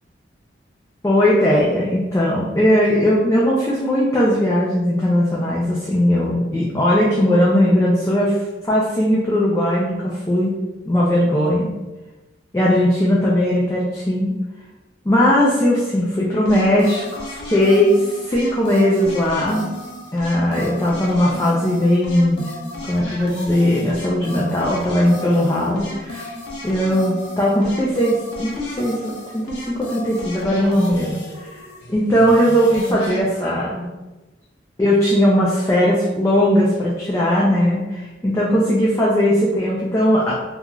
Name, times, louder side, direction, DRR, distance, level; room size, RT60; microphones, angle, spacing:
voice 1, 1.0-10.5 10.9-11.7 12.5-14.4 15.1-19.7 20.1-22.5 22.8-26.3 26.6-31.6 31.9-33.9 34.8-40.3, equal, 15° left, -6 dB, 0.3 m, -18 dB
sound 1, 16.4-33.2, left 1 dB, 70° left, 0.6 m, -34 dB
2.3 x 2.3 x 3.0 m, 1.1 s
head